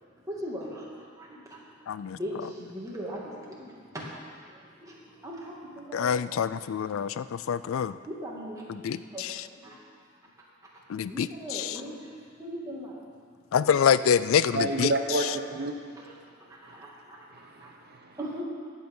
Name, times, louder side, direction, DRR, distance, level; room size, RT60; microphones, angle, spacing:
voice 1, 0.3-1.7 2.1-6.3 8.1-8.6 8.9-9.8 11.1-11.9 12.4-13.0 14.9-15.0 16.0-16.1 16.4-17.7 18.1-18.4, equal, 15° right, -5 dB, 2.4 m, -40 dB
voice 2, 1.9-2.2 5.9-8.0 8.7-9.5 10.9-11.8 13.5-14.9, left 7 dB, 75° left, 15 dB, 0.4 m, -26 dB
voice 3, 14.5-16.0 16.7-16.8 17.3-18.2, right 2 dB, 50° right, 4 dB, 0.7 m, -30 dB
15.5 x 9.1 x 5.5 m, 2.1 s
head